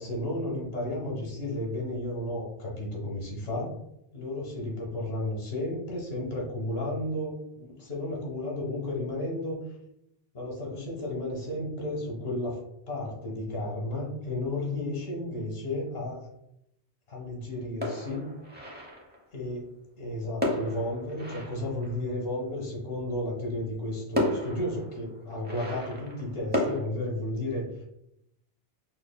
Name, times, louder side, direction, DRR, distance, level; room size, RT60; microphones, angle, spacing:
voice 1, 0.0-3.8 4.1-9.6 10.3-16.3 17.1-18.3 19.3-27.8, left 1 dB, 70° left, -3 dB, 1.3 m, -33 dB
sound 1, 17.8-19.3 20.4-22.4 23.5-23.6 24.2-26.8, left 1 dB, 10° right, 0.6 m, -33 dB
5.9 x 2.1 x 2.2 m, 0.81 s
omnidirectional pair, 1.1 m